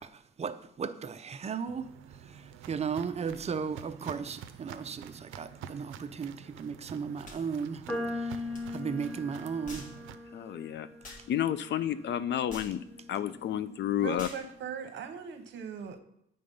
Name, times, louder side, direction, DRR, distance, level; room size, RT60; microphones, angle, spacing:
voice 1, 0.0-1.9 2.2-9.9, right 6 dB, 35° right, 10 dB, 0.6 m, -36 dB
Walk footsteps, 1.7-10.1, right 8 dB, 85° right, 0.5 m, -48 dB
sound 1, 7.2-7.4 8.5-8.7 9.7-10.0 11.0-11.3 12.5-12.8 14.2-14.5, left 1 dB, 40° left, 1.8 m, -45 dB
sound 2, 7.9-14.2, left 2 dB, 5° left, 1.6 m, -41 dB
voice 2, 10.3-12.8 13.1-14.3, left 10 dB, 65° left, 14 dB, 0.5 m, -31 dB
voice 3, 14.0-16.0, right 7 dB, 70° right, 7 dB, 0.9 m, -39 dB
8.7 x 3.8 x 5.3 m, 0.76 s
cardioid pair, 90°, 20 cm